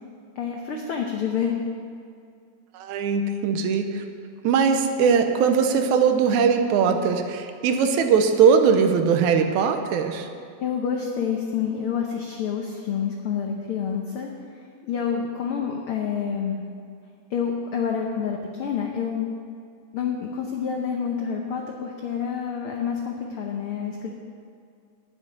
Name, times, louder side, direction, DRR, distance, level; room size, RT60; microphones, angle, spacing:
voice 1, 0.4-1.6 10.6-14.3 14.8-16.6 17.3-19.3 19.9-24.1, left 7 dB, 70° left, 1 dB, 1.3 m, -28 dB
voice 2, 2.7-4.0 4.4-10.3, right 6 dB, 80° right, 6 dB, 2.2 m, -20 dB
9.7 x 7.4 x 9.2 m, 2.3 s
omnidirectional pair, 3.4 m